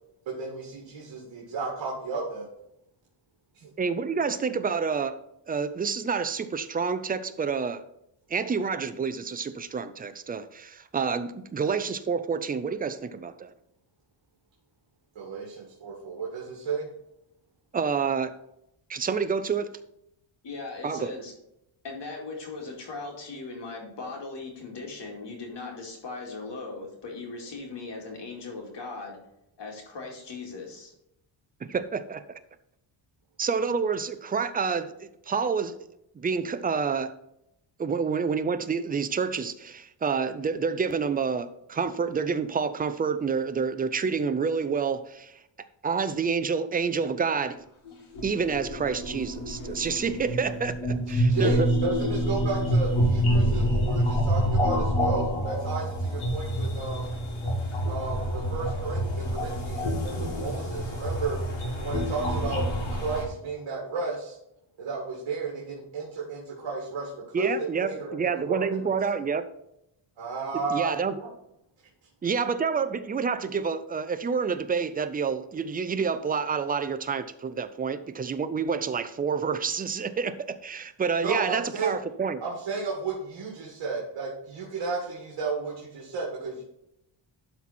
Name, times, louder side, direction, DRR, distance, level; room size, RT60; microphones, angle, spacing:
voice 1, 0.3-2.5 3.5-3.7 15.2-16.9 51.1-57.1 57.9-61.4 61.8-62.6 62.9-64.4 64.8-67.1 67.4-69.0 70.2-70.9 71.2-71.3 81.2-82.0 82.4-86.6, right 4 dB, 65° right, 2.1 m, -33 dB
voice 2, 3.8-5.2 5.5-7.8 8.3-13.5 17.7-18.3 18.9-19.7 20.8-21.1 31.6-32.2 33.4-35.8 36.2-37.1 37.8-45.4 45.8-47.6 48.2-51.7 67.3-69.5 70.7-71.2 72.2-82.4, right 5 dB, 20° right, 0.3 m, -28 dB
voice 3, 20.4-21.3 21.8-29.2 29.6-30.9, left 3 dB, 55° left, 2.3 m, -38 dB
sound 1, 47.9-63.2, equal, 75° left, 2.6 m, -27 dB
12.0 x 4.2 x 4.3 m
wide cardioid pair, 145°, 49 cm